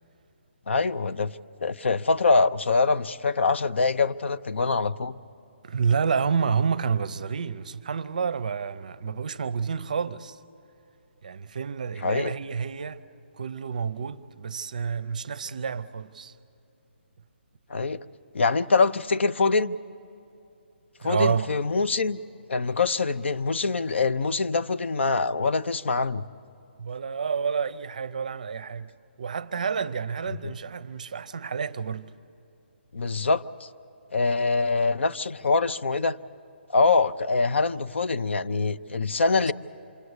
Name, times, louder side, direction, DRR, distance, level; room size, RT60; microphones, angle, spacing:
voice 1, 0.7-1.3 1.6-5.1 12.0-12.3 17.7-18.0 18.3-19.8 21.0-22.2 22.5-26.2 30.4-30.5 32.9-33.7 34.1-36.2 36.7-39.5, left 4 dB, 75° left, 0.7 m, -24 dB
voice 2, 5.6-10.4 11.2-13.0 13.3-16.3 21.0-21.5 26.8-28.9 29.2-32.1, right 6 dB, 40° right, 0.6 m, -29 dB
27.0 x 23.0 x 8.0 m
hypercardioid pair, 180°, 6 cm